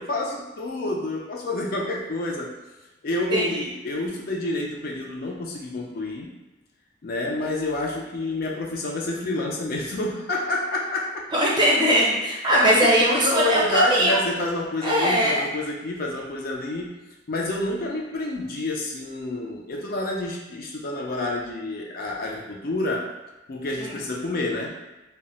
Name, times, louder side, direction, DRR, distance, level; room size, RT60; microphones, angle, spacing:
voice 1, 0.0-2.5 3.0-6.3 7.0-11.3 12.5-17.0 17.3-23.1 23.5-24.7, left 2 dB, 50° left, -1 dB, 0.4 m, -28 dB
voice 2, 3.3-3.7 11.3-14.2 14.8-15.4 23.8-24.0, equal, 25° right, -5 dB, 0.6 m, -20 dB
2.1 x 2.0 x 3.7 m, 1.0 s
head